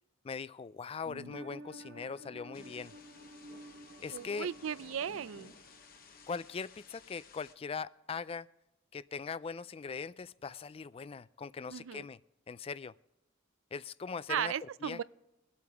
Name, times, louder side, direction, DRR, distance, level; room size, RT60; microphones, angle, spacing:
voice 1, 0.2-2.9 4.0-4.5 6.3-8.5 8.9-12.2 12.5-12.9 13.7-15.0, left 5 dB, 30° left, 0.3 m, -41 dB
sound 1, 1.0-6.6 6.8-6.9, right 1 dB, 60° right, 1.2 m, -52 dB
Thunder / Rain, 2.5-7.6, left 4 dB, 50° left, 1.1 m, -56 dB
voice 2, 4.1-5.5 11.7-12.1 14.3-15.0, right 8 dB, 85° right, 0.4 m, -36 dB
23.0 x 8.5 x 3.5 m
head